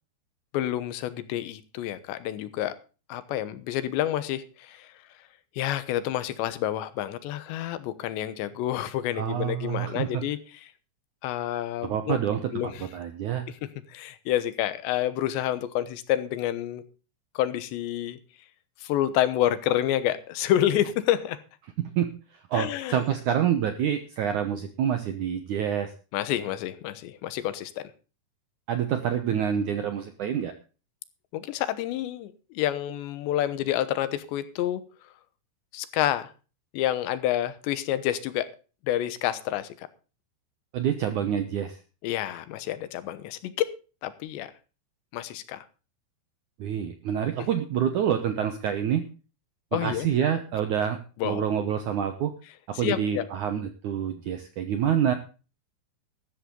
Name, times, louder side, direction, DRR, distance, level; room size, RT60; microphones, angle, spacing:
voice 1, 0.5-2.7 3.1-4.9 5.6-10.4 11.2-12.2 12.5-12.9 13.5-13.6 13.9-16.8 17.4-18.2 18.8-21.4 22.5-23.0 26.1-27.9 31.3-34.8 35.7-36.3 36.7-38.5 38.8-39.9 42.0-43.7 44.0-44.5 45.1-45.6 47.4-47.5 49.7-50.1 51.2-51.4 52.7-53.3, left 12 dB, 85° left, 13 dB, 3.3 m, -28 dB
voice 2, 9.2-10.3 11.8-12.5 12.9-13.5 22.0-22.1 22.5-25.9 28.7-30.5 40.7-41.8 46.6-49.1 49.7-52.3 52.7-55.1, right 9 dB, 75° right, 8 dB, 1.8 m, -27 dB
13.5 x 12.5 x 3.8 m, 0.34 s
omnidirectional pair, 5.0 m